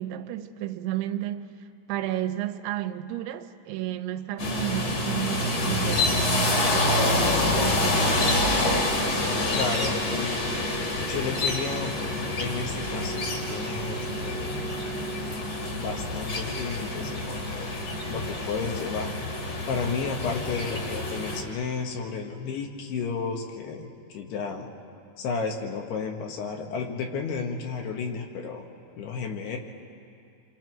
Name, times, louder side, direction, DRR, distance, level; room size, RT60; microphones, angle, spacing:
voice 1, 0.0-1.6 1.9-8.2, right 13 dB, 90° right, 3.1 m, -32 dB
sound 1, 4.4-21.4, left 1 dB, 45° left, 2.8 m, -27 dB
voice 2, 9.5-10.5 11.0-14.6 15.8-19.1 19.7-24.7 25.2-28.7 29.0-29.6, left 5 dB, 70° left, 3.2 m, -32 dB
28.0 x 26.0 x 4.6 m
omnidirectional pair, 5.2 m